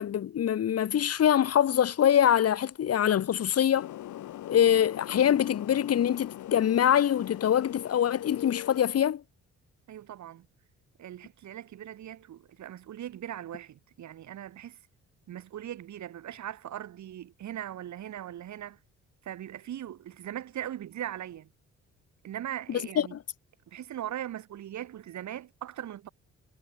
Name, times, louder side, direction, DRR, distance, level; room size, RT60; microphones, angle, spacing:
voice 1, 0.0-3.9 4.5-9.2 22.7-23.2, left 10 dB, 55° left, 1.2 m, -24 dB
sound 1, 3.7-8.9, left 13 dB, 80° left, 3.7 m, -41 dB
voice 2, 9.9-10.5 11.0-14.8 15.3-18.8 19.2-21.5 22.2-23.1 23.7-26.1, right 11 dB, 70° right, 3.1 m, -40 dB
cardioid pair, 90°, 30 cm